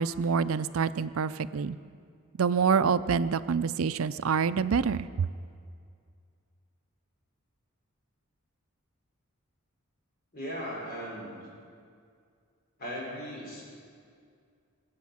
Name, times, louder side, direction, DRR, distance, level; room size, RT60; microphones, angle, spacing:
voice 1, 0.0-1.7 2.4-5.3, right 6 dB, 70° right, 14 dB, 0.4 m, -26 dB
voice 2, 10.3-11.4 12.8-13.8, equal, 45° left, -3 dB, 4.9 m, -38 dB
22.5 x 8.3 x 7.2 m, 2.2 s
head